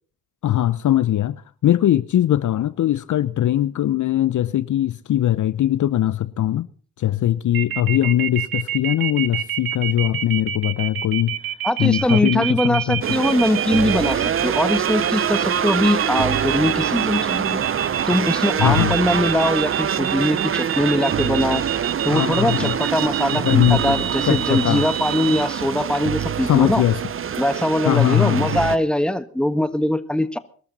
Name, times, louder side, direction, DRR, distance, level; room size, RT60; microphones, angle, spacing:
voice 1, 0.4-6.7 7.0-11.4 11.8-13.0 18.6-19.0 22.1-22.8 23.3-24.0 24.2-24.8 26.4-27.0 27.9-28.5, left 12 dB, 50° left, 0.7 m, -20 dB
sound 1, 7.5-25.4, right 12 dB, 65° right, 1.4 m, -27 dB
voice 2, 11.6-17.6 18.1-21.6 22.0-26.8 27.4-30.4, left 1 dB, ahead, 1.4 m, -21 dB
sound 2, 13.0-28.8, right 8 dB, 35° right, 0.7 m, -24 dB
22.5 x 13.0 x 4.1 m
hypercardioid pair, 50°, 37 cm